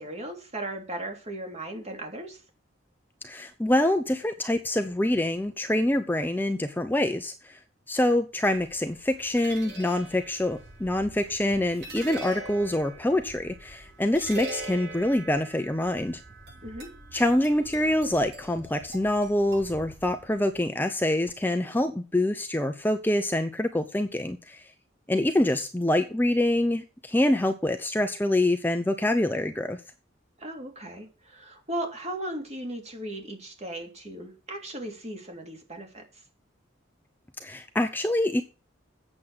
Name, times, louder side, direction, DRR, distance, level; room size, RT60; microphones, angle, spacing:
voice 1, 0.0-2.4 16.6-16.9 30.4-36.0, right 1 dB, 35° right, 3 dB, 3.1 m, -37 dB
voice 2, 3.2-7.6 7.9-16.2 17.1-24.6 25.1-29.8 37.4-38.4, left 1 dB, 10° left, 7 dB, 0.7 m, -25 dB
sound 1, 8.5-20.6, right 2 dB, 60° right, 6.9 m, -43 dB
8.5 x 7.4 x 7.8 m, 0.34 s
head